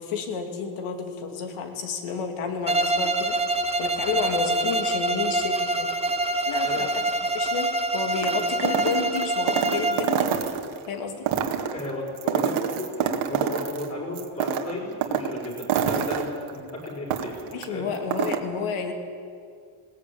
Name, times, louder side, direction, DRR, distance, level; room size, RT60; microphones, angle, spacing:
voice 1, 0.0-3.5 3.8-5.9 6.5-7.0 7.3-10.4 10.9-11.3 17.5-18.9, left 5 dB, 80° left, 4 dB, 2.9 m, -31 dB
Bowed string instrument, 2.7-10.1, right 1 dB, 10° right, 0.9 m, -25 dB
sound 1, 8.2-10.8 11.2-13.9 14.2-17.6 17.9-18.4, right 8 dB, 75° right, 2.0 m, -27 dB
voice 2, 11.7-17.9, left 1 dB, 30° left, -3 dB, 5.5 m, -34 dB
20.0 x 18.0 x 8.8 m, 2.3 s
cardioid pair, 145°, 50 cm